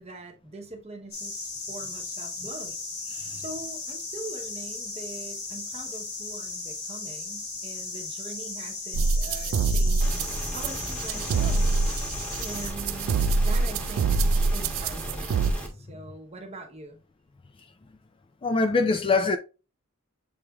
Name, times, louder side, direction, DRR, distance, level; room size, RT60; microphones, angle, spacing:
voice 1, 0.0-2.7 3.4-11.7 12.4-14.1 14.5-17.0, right 2 dB, 30° right, 0.9 m, -43 dB
sound 1, 1.1-12.7, left 3 dB, 70° left, 1.7 m, -36 dB
sound 2, 8.9-15.5, right 3 dB, 65° right, 0.3 m, -25 dB
sound 3, 10.0-15.7, right 1 dB, 5° left, 1.1 m, -36 dB
voice 2, 18.4-19.4, left 3 dB, 25° left, 0.3 m, -23 dB
7.0 x 3.3 x 2.3 m
head